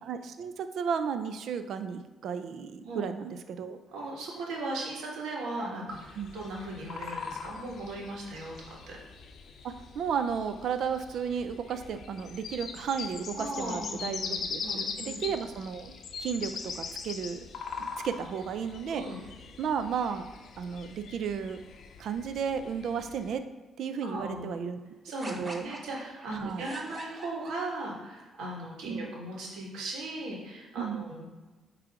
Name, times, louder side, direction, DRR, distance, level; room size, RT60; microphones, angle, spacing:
voice 1, 0.0-3.8 6.2-6.3 9.6-15.9 16.2-17.5 17.8-19.0 19.6-20.2 20.6-21.6 22.0-23.4 23.8-24.8 25.4-25.6 26.3-26.7 28.9-29.1 30.8-31.0, right 7 dB, 70° right, 9 dB, 0.5 m, -33 dB
voice 2, 3.9-9.0 13.3-15.2 18.9-19.2 24.0-24.5 25.0-31.3, right 2 dB, 85° right, -2 dB, 1.8 m, -38 dB
sound 1, 5.9-23.4, left 5 dB, 65° left, 0.7 m, -41 dB
sound 2, 25.2-28.0, right 1 dB, 20° right, 1.1 m, -43 dB
9.4 x 3.3 x 3.7 m, 1.3 s
cardioid pair, 90°, 0 cm